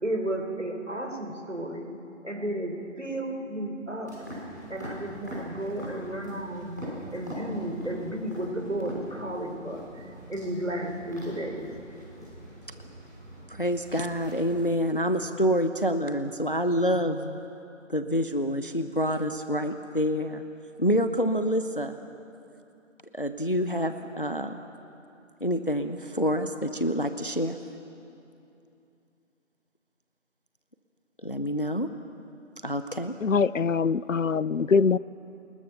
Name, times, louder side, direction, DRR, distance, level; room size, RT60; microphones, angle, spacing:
voice 1, 0.0-1.9 2.2-4.2 4.7-6.8 7.1-11.8, right 1 dB, 70° right, 3 dB, 4.4 m, -33 dB
sound 1, 4.0-14.7, equal, 15° left, 5.6 m, -43 dB
voice 2, 13.5-17.4 17.9-20.4 20.8-22.0 23.1-24.6 25.4-27.6 31.2-31.9 32.6-33.1, equal, 45° left, 9 dB, 0.9 m, -27 dB
voice 3, 33.2-35.0, left 5 dB, 80° left, 20 dB, 0.6 m, -23 dB
29.0 x 20.0 x 6.9 m, 2.7 s
figure-of-eight pair, 180°, 38 cm